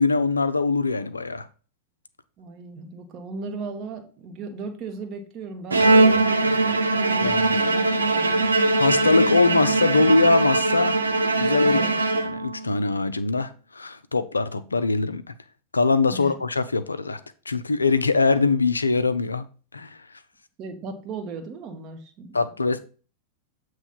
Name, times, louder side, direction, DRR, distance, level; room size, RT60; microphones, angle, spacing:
voice 1, 0.0-1.5 7.2-7.6 8.8-11.0 11.4-11.8 12.2-15.3 15.7-17.2 17.5-19.4 19.7-20.0 22.3-22.8, left 3 dB, 80° left, 0.5 m, -22 dB
voice 2, 2.4-6.6 6.9-7.8 8.1-8.5 11.6-12.0 16.1-16.4 20.6-22.4, right 3 dB, 35° right, 1.3 m, -37 dB
Bowed string instrument, 5.7-12.7, right 2 dB, 80° right, 0.7 m, -21 dB
8.3 x 3.1 x 5.5 m
figure-of-eight pair, 90°, 0 cm